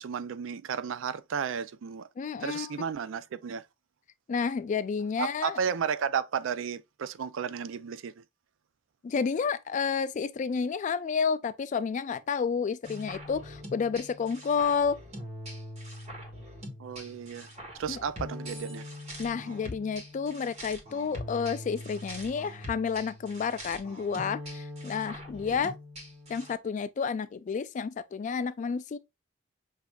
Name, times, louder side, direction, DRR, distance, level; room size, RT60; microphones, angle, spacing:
voice 1, 0.0-2.1 2.4-3.7 5.2-8.2 16.8-17.5 17.7-18.9 25.5-25.6, right 7 dB, 85° right, 0.4 m, -33 dB
voice 2, 2.2-2.7 4.3-5.6 9.0-15.0 17.9-18.0 19.2-25.8 26.3-29.0, left 6 dB, 40° left, 0.3 m, -30 dB
sound 1, 12.8-26.5, left 1 dB, 35° right, 1.3 m, -42 dB
6.0 x 2.7 x 2.3 m
head